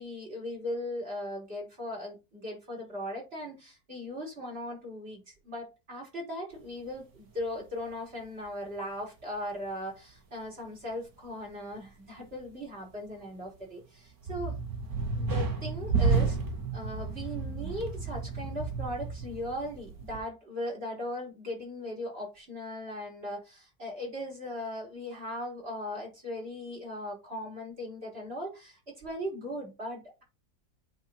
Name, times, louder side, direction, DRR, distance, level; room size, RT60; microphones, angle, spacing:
voice 1, 0.0-14.6 15.1-16.4 16.7-30.2, left 1 dB, 35° right, 5.3 m, -38 dB
sound 1, 7.4-7.6 13.1-13.2 14.2-20.2, right 4 dB, 65° right, 2.2 m, -31 dB
8.8 x 4.5 x 5.7 m
omnidirectional pair, 1.7 m